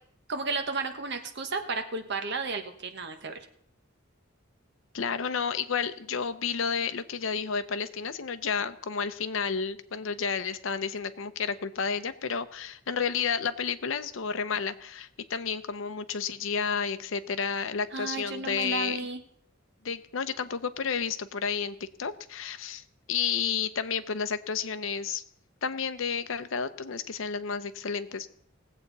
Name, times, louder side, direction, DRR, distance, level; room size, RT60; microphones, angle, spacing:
voice 1, 0.3-3.3 17.9-19.2, right 4 dB, 60° right, 7 dB, 1.2 m, -33 dB
voice 2, 4.9-19.0 19.8-25.2 25.6-28.3, left 6 dB, 75° left, 11 dB, 0.7 m, -31 dB
19.0 x 8.0 x 4.0 m, 0.67 s
head